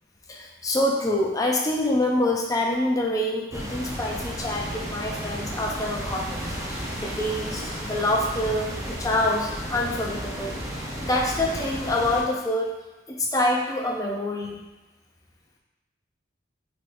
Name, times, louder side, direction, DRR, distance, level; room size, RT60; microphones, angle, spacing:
voice 1, 0.3-12.7 13.1-14.6, left 1 dB, 20° left, 0 dB, 0.5 m, -26 dB
sound 1, 3.5-12.2, equal, 15° right, 0.7 m, -33 dB
5.7 x 3.6 x 2.6 m, 1.1 s
head